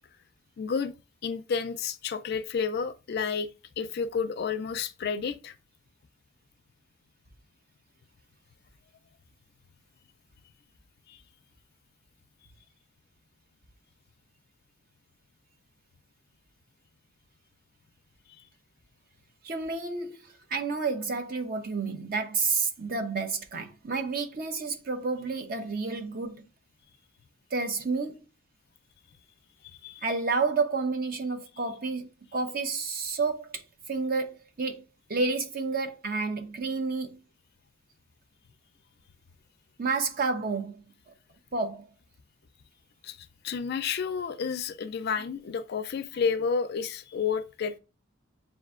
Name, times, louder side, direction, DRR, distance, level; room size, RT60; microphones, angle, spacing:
voice 1, 0.6-0.9 1.2-3.5 3.8-5.5 11.1-11.2 18.4-18.5 29.6-30.1 43.0-43.2 43.4-47.8, left 6 dB, 55° left, 0.4 m, -31 dB
voice 2, 19.4-26.5 27.5-28.2 30.0-33.6 33.9-34.8 35.1-37.2 39.8-40.8 41.5-41.9, right 4 dB, 45° right, 0.6 m, -30 dB
7.3 x 2.6 x 2.4 m
head